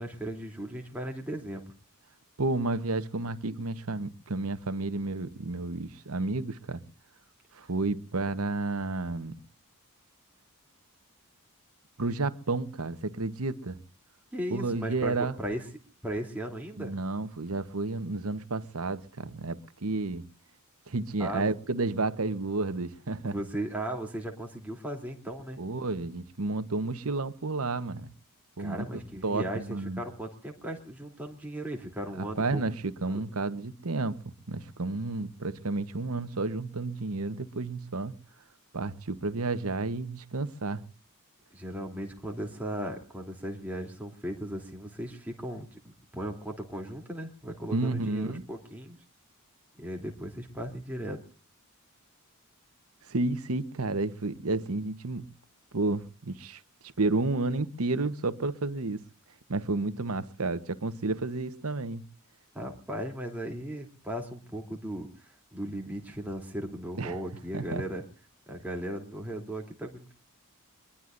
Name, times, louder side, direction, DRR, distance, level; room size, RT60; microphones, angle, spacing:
voice 1, 0.0-1.7 14.3-15.6 16.0-17.0 21.2-21.5 23.2-25.6 28.6-29.6 30.0-32.6 33.1-33.2 41.5-45.8 46.1-49.0 49.8-51.2 62.5-68.0 68.5-70.1, right 1 dB, 5° right, 3.1 m, -37 dB
voice 2, 2.4-6.8 7.5-9.4 12.0-13.8 14.5-15.4 16.8-20.3 20.9-23.3 25.6-28.1 28.6-30.0 32.2-38.2 38.7-40.8 47.7-48.4 53.0-55.3 55.7-59.0 59.5-62.0 67.0-67.2 67.5-67.8, right 3 dB, 70° right, 1.1 m, -31 dB
23.5 x 22.0 x 2.6 m
head